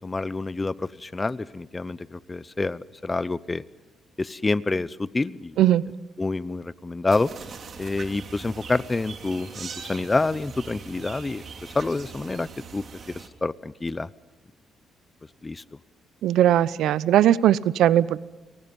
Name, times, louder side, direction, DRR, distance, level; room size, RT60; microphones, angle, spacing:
voice 1, 0.0-3.6 4.2-5.6 6.2-7.3 7.8-12.8 13.1-14.1 15.4-15.6, left 3 dB, 20° left, 19 dB, 0.8 m, -28 dB
sound 1, 7.1-13.3, right 5 dB, 50° right, 2.8 m, -41 dB
voice 2, 16.2-18.2, right 12 dB, 80° right, 18 dB, 0.8 m, -19 dB
30.0 x 24.0 x 5.4 m, 1.1 s
cardioid pair, 90°, 0 cm